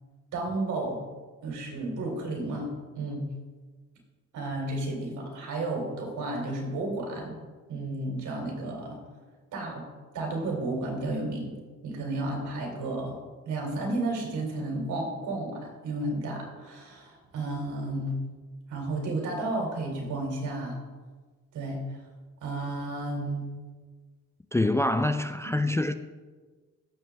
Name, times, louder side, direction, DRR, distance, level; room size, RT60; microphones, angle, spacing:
voice 1, 0.3-1.0 1.4-3.3 4.3-7.4 7.7-9.0 9.5-9.8 10.1-11.6 11.8-13.2 13.5-18.2 18.7-20.8 21.5-21.8 22.4-23.5 25.4-25.5, right 2 dB, 75° right, 3.0 m, -32 dB
voice 2, 24.5-25.9, left 1 dB, 10° left, 0.3 m, -25 dB
14.5 x 7.1 x 3.4 m
cardioid pair, 90°, 30 cm